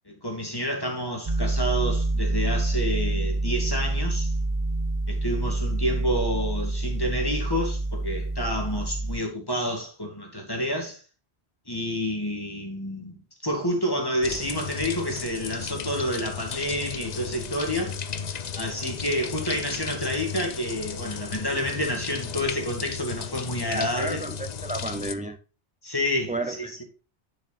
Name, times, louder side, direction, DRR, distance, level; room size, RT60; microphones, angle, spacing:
voice 1, 0.1-4.3 5.1-11.0 11.7-13.2 13.4-17.9 18.6-24.2 25.8-26.7, equal, 20° left, 2.3 m, -29 dB
sound 1, 1.3-9.2, right 2 dB, 35° right, 0.8 m, -27 dB
sound 2, 14.2-25.1, left 6 dB, 45° left, 0.7 m, -35 dB
voice 2, 23.7-25.4 26.3-26.8, right 2 dB, 10° right, 0.4 m, -32 dB
10.5 x 6.5 x 2.5 m
omnidirectional pair, 1.1 m